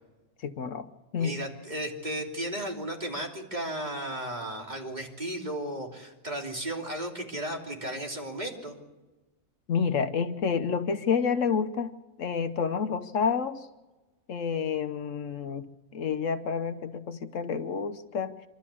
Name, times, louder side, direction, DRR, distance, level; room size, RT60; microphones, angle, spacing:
voice 1, 0.4-0.9 1.1-1.4 9.7-13.7 14.3-15.7 15.9-18.3, left 6 dB, 70° left, 10 dB, 1.2 m, -29 dB
voice 2, 1.2-8.8, right 1 dB, 30° right, 0 dB, 3.3 m, -35 dB
25.0 x 13.0 x 8.5 m, 1.1 s
omnidirectional pair, 1.4 m